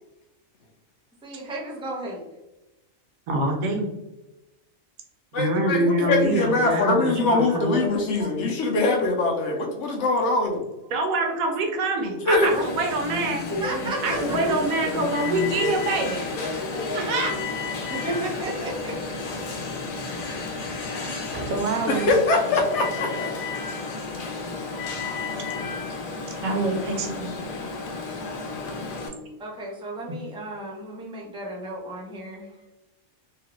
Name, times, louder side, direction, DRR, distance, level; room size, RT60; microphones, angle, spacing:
voice 1, 1.2-2.2 6.3-6.8 7.0-8.7 9.5-9.7 10.0-10.1 12.5-12.6 13.6-14.4 17.9-19.0 29.4-32.5, right 1 dB, 10° right, -3 dB, 0.3 m, -34 dB
voice 2, 3.3-3.9 5.3-7.7 10.9-13.5 14.0-16.2 16.9-17.4 21.5-22.1 24.3-24.4 26.4-27.3, right 2 dB, 85° right, 2 dB, 1.1 m, -25 dB
voice 3, 5.3-10.7 12.3-12.5 21.9-23.1, left 3 dB, 65° left, 1 dB, 0.8 m, -22 dB
Alarm, 12.4-29.1, left 4 dB, 85° left, 1.1 m, -32 dB
Subway metro underground, 12.4-22.1, left 1 dB, 35° right, 0.9 m, -36 dB
2.9 x 2.4 x 2.9 m, 0.98 s
omnidirectional pair, 1.4 m